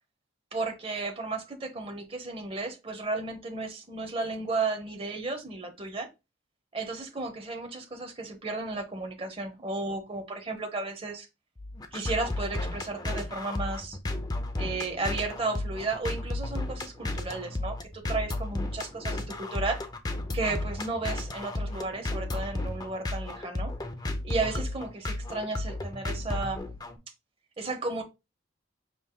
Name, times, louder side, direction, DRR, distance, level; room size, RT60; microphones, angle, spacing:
voice 1, 0.5-6.1 6.7-11.3 11.9-14.0 14.6-19.8 20.3-23.8 24.2-26.7 27.6-28.0, right 3 dB, 30° right, 0.9 m, -33 dB
sound 1, 11.6-27.0, left 2 dB, 20° left, 0.5 m, -33 dB
5.5 x 3.9 x 2.2 m
head